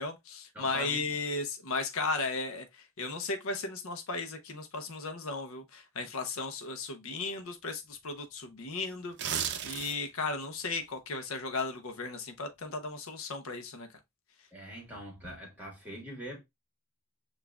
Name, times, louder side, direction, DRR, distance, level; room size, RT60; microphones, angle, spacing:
voice 1, 0.0-13.9, left 3 dB, 65° left, 0.7 m, -36 dB
voice 2, 0.5-1.1 14.5-16.4, equal, 5° right, 1.5 m, -43 dB
sound 1, 9.0-10.2 10.6-10.8, right 8 dB, 50° right, 0.5 m, -34 dB
6.8 x 2.4 x 2.2 m
head